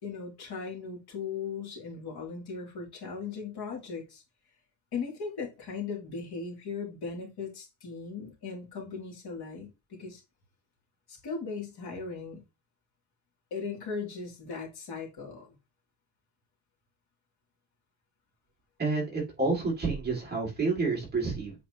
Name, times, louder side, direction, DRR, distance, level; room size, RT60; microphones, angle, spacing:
voice 1, 0.0-4.2 4.9-10.2 11.1-12.4 13.5-15.5, left 5 dB, 55° left, 3.4 m, -38 dB
voice 2, 18.8-21.5, right 3 dB, 20° right, 2.9 m, -29 dB
8.3 x 4.9 x 3.1 m
cardioid pair, 170°, 45 cm